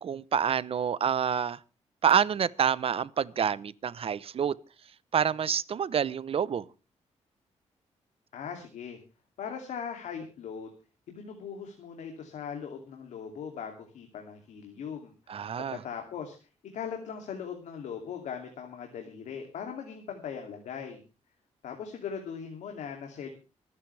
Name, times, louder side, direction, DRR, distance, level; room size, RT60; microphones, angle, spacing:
voice 1, 0.0-1.6 2.0-4.6 5.1-6.7 15.3-15.8, right 7 dB, 50° right, 0.8 m, -27 dB
voice 2, 8.3-9.0 9.4-10.7 11.1-16.4 16.7-21.0 21.6-23.3, left 7 dB, 85° left, 2.7 m, -39 dB
26.0 x 9.8 x 3.4 m
cardioid pair, 100°, 12 cm